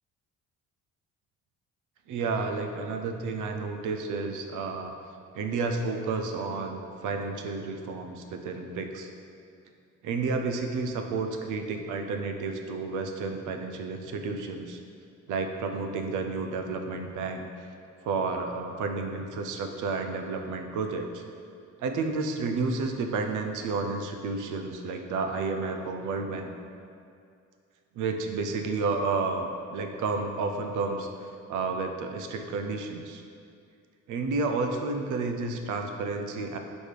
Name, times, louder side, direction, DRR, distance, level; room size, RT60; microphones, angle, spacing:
voice 1, 2.1-4.9 5.3-9.1 10.0-14.8 15.3-17.5 18.0-21.2 21.8-26.5 27.9-31.1 31.5-33.2 34.1-36.6, right 4 dB, 80° right, 5 dB, 0.6 m, -31 dB
4.9 x 4.1 x 4.9 m, 2.4 s
cardioid pair, 90°, 30 cm